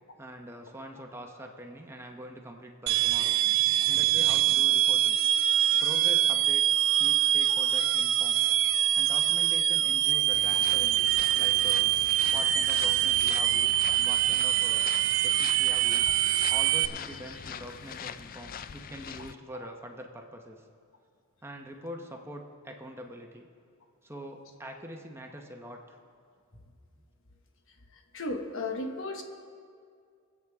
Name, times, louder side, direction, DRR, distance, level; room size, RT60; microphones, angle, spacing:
voice 1, 0.2-3.4 3.9-5.2 5.8-8.5 9.0-11.9 12.3-14.9 15.2-16.1 16.5-20.6 21.4-23.5 24.0-26.0, equal, 10° right, 2 dB, 0.9 m, -44 dB
sound 1, 2.9-16.9, right 12 dB, 60° right, 0.4 m, -24 dB
sound 2, 10.3-19.3, left 7 dB, 40° left, 0.3 m, -42 dB
voice 2, 28.1-29.2, left 2 dB, 65° left, 4 dB, 1.3 m, -34 dB
23.0 x 8.3 x 3.5 m, 2.2 s
head